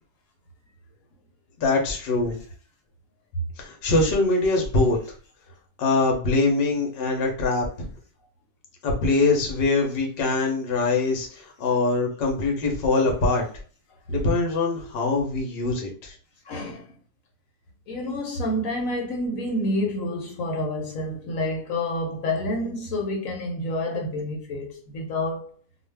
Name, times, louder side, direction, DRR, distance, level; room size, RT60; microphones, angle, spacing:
voice 1, 1.6-2.4 3.6-5.0 5.8-7.9 8.8-13.4 14.1-16.1, left 3 dB, 50° left, 0.8 m, -23 dB
voice 2, 16.5-16.9 17.9-25.6, left 1 dB, 70° left, 1.0 m, -28 dB
2.5 x 2.2 x 3.3 m
omnidirectional pair, 1.6 m